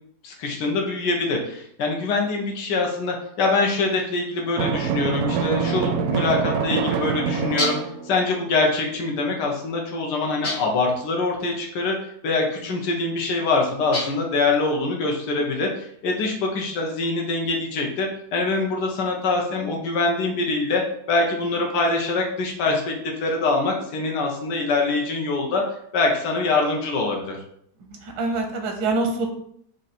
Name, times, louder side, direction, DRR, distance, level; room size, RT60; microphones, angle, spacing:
voice 1, 0.2-7.8 8.0-22.9 23.2-27.4, left 3 dB, 80° left, 0 dB, 1.5 m, -24 dB
Drum, 4.6-8.3, right 6 dB, 70° right, 0.9 m, -25 dB
sound 1, 7.6-8.0 10.4-10.9 13.9-14.4, left 2 dB, 40° left, 0.7 m, -29 dB
voice 2, 27.9-29.3, right 3 dB, 85° right, 3 dB, 1.5 m, -25 dB
4.8 x 2.6 x 4.1 m, 0.68 s
omnidirectional pair, 1.8 m